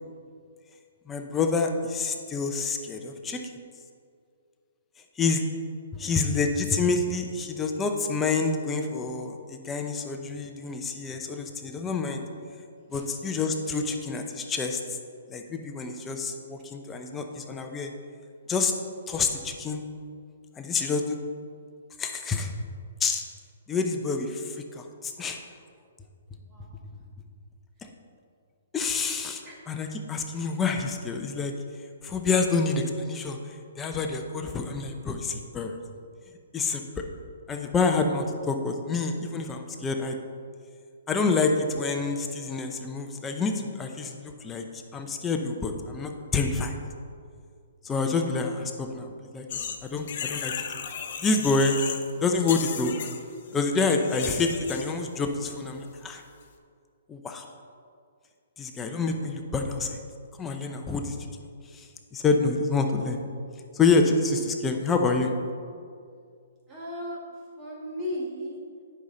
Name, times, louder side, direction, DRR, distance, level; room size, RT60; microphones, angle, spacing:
voice 1, 1.1-3.4 5.2-5.4 6.0-12.2 12.9-14.8 15.3-17.9 18.5-18.7 19.1-19.8 20.6-21.2 22.0-22.5 23.0-23.2 23.7-25.4 28.7-31.5 32.0-33.4 33.8-35.8 36.5-36.8 37.5-40.2 41.1-44.6 44.9-46.8 47.8-50.8 51.2-51.8 52.2-53.0 53.5-56.2 57.1-57.4 58.6-60.0 60.4-61.2 61.7-63.2 63.7-65.3, left 4 dB, 15° left, 4 dB, 0.6 m, -27 dB
sound 1, 49.5-52.1 52.3-54.9, left 7 dB, 50° left, 0.7 m, -35 dB
voice 2, 66.7-67.2 67.6-68.6, left 1 dB, 20° right, -4 dB, 1.6 m, -36 dB
9.4 x 5.6 x 3.9 m, 2.2 s
hypercardioid pair, 150°, 0 cm